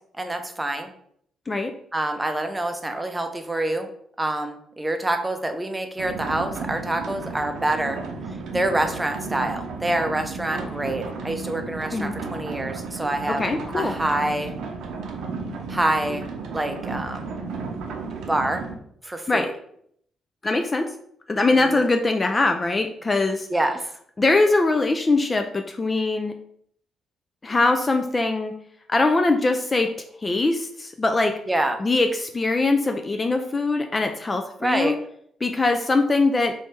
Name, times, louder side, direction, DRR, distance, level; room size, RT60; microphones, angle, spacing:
voice 1, 0.2-0.9 1.9-3.9 4.2-8.0 8.5-13.4 13.7-14.5 15.7-16.2 16.5-17.3 18.3-18.6 19.0-19.5 21.5-21.9 23.5-23.8 31.5-31.8 34.6-35.0, right 1 dB, 15° right, 6 dB, 0.6 m, -26 dB
sound 1, 6.0-18.8, right 4 dB, 75° right, 0.6 m, -33 dB
voice 2, 13.4-14.0 19.3-19.5 20.4-20.9 21.3-23.5 24.2-26.3 27.4-28.5 28.9-29.9 30.2-31.4 31.8-34.9 35.4-36.5, left 3 dB, 25° left, 6 dB, 0.3 m, -22 dB
3.2 x 3.1 x 4.5 m, 0.67 s
cardioid pair, 90°, 0 cm